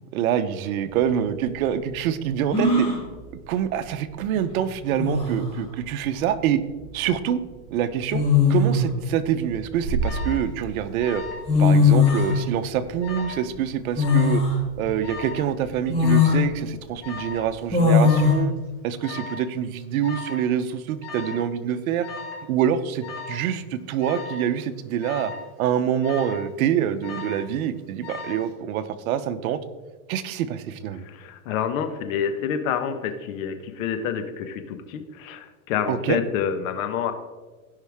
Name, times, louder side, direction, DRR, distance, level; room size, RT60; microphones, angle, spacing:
voice 1, 0.1-2.9 3.3-6.6 6.9-7.4 7.7-8.2 8.5-11.2 11.6-14.4 14.8-18.5 18.8-22.1 22.5-25.3 25.6-29.6 30.1-31.1 35.9-36.2, right 9 dB, 70° right, 12 dB, 0.9 m, -26 dB
sound 1, 0.9-1.0 2.5-3.0 4.5-4.6 5.0-5.5 6.8-7.0 8.1-8.9 9.5-10.5 11.2-11.3 11.5-12.3 14.0-14.6 15.1-15.2 15.9-16.4 17.7-18.3, left 4 dB, 15° left, 3.0 m, -19 dB
Alarm, 10.0-10.4 11.0-11.5 11.8-12.4 13.0-13.4 14.0-14.5 15.0-15.5 16.0-16.5 17.0-17.4 18.0-18.4 19.0-19.4 20.0-20.5 21.0-21.5 22.0-22.4 23.0-23.4 24.0-24.5 25.0-25.4 26.0-26.5 27.0-27.5 28.0-28.5, left 4 dB, 40° left, 2.7 m, -37 dB
voice 2, 31.0-37.1, left 8 dB, 65° left, 8 dB, 1.3 m, -28 dB
16.0 x 5.7 x 3.6 m, 1.3 s
supercardioid pair, 135°, 44 cm